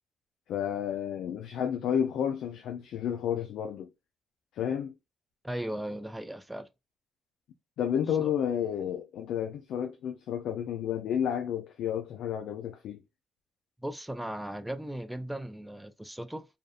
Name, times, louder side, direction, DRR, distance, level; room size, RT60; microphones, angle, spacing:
voice 1, 0.5-3.9 4.5-4.9 7.8-13.0, left 9 dB, 80° left, 0.4 m, -31 dB
voice 2, 5.4-6.7 8.2-8.3 13.8-16.5, right 1 dB, 5° right, 0.4 m, -37 dB
2.6 x 2.4 x 2.4 m
cardioid pair, 90°, 0 cm